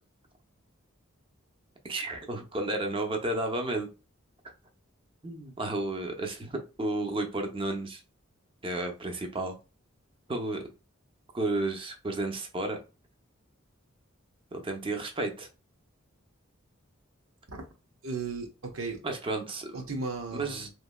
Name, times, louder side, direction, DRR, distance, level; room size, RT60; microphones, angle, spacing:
voice 1, 1.8-3.9 5.2-8.0 8.6-9.6 10.3-10.6 11.3-12.8 14.5-15.5 19.0-19.8 20.3-20.7, right 2 dB, 25° right, 0.6 m, -32 dB
voice 2, 18.0-19.0 19.7-20.7, right 3 dB, 80° right, 0.9 m, -35 dB
3.1 x 2.7 x 2.2 m
head